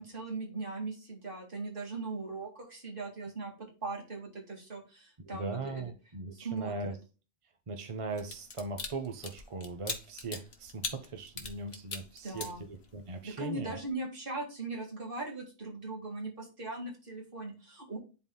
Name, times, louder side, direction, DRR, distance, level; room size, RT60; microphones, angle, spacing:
voice 1, 0.0-3.5 3.8-5.8 6.3-7.0 12.2-12.7 13.2-18.0, right 3 dB, 55° right, 2.2 m, -39 dB
voice 2, 5.2-7.0 7.7-13.8, right 3 dB, 35° right, 0.7 m, -39 dB
sound 1, 8.1-13.2 13.6-13.8, left 4 dB, 70° left, 1.3 m, -40 dB
11.0 x 4.0 x 2.2 m
omnidirectional pair, 1.1 m